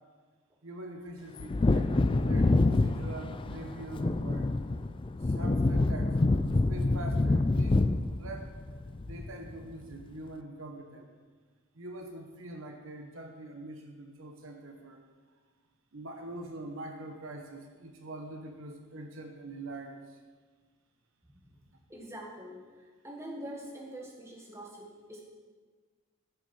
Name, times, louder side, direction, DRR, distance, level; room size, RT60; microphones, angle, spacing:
voice 1, 0.6-4.5 5.2-6.1 6.7-7.8 8.2-8.6 9.0-11.1 11.7-15.0 15.9-20.2, right 1 dB, 60° right, 3 dB, 1.1 m, -44 dB
Wind / Thunder, 1.4-9.6 9.9-10.0, left 2 dB, 25° left, 0.3 m, -27 dB
voice 2, 21.3-21.6 21.9-25.2, equal, 10° right, -2 dB, 1.7 m, -45 dB
15.0 x 6.3 x 5.5 m, 1.5 s
head